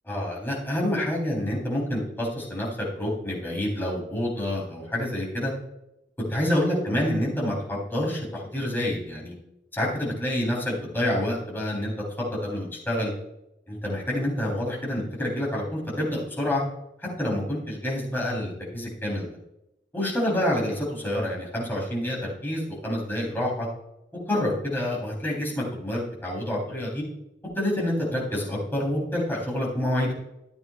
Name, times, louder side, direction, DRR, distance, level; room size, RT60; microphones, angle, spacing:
voice 1, 0.1-2.7 3.0-5.5 6.3-9.3 9.7-11.9 12.4-13.1 13.7-16.6 17.2-19.3 19.9-23.7 24.3-27.0 27.6-30.1, left 1 dB, 10° left, -4 dB, 3.8 m, -27 dB
14.0 x 8.8 x 2.5 m, 0.87 s
head